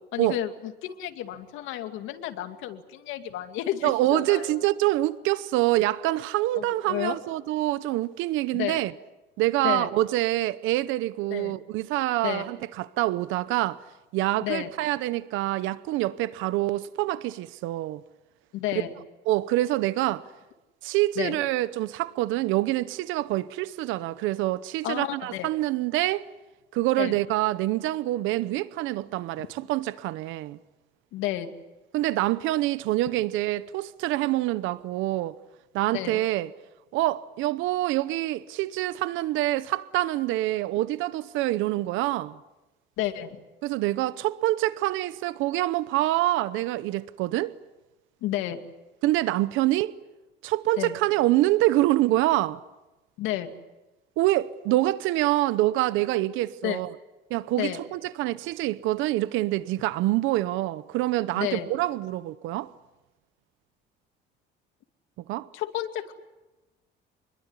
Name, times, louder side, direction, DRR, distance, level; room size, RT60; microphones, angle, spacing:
voice 1, 0.1-4.6 6.6-7.2 8.5-8.8 9.6-9.9 11.3-11.6 12.2-12.5 14.4-14.7 18.5-18.9 21.2-21.4 24.8-25.5 27.0-27.2 31.1-31.5 35.9-36.2 43.0-43.4 48.2-48.6 50.8-51.0 53.2-53.5 56.6-56.8 57.6-57.8 61.3-61.7 65.5-66.1, left 13 dB, 85° left, 2.4 m, -31 dB
voice 2, 3.8-8.9 9.4-13.8 14.1-18.0 19.3-20.3 20.8-26.3 26.7-30.6 31.9-35.3 35.7-36.5 36.9-42.4 43.6-47.5 49.0-49.9 50.4-52.6 54.2-56.9 57.3-62.7 65.3-65.5, right 16 dB, 80° right, 0.9 m, -26 dB
26.0 x 22.0 x 9.8 m
cardioid pair, 180°, 20 cm